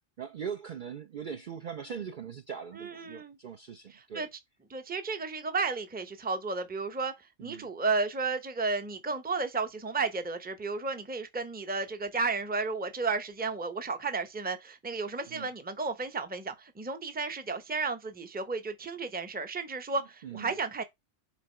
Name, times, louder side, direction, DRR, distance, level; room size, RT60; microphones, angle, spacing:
voice 1, 0.2-4.3 7.4-7.7 15.3-15.5 20.2-20.5, right 7 dB, 55° right, 0.6 m, -40 dB
voice 2, 2.7-3.4 3.9-4.3 4.7-20.8, right 4 dB, 10° right, 0.6 m, -33 dB
7.5 x 3.8 x 4.3 m
omnidirectional pair, 1.3 m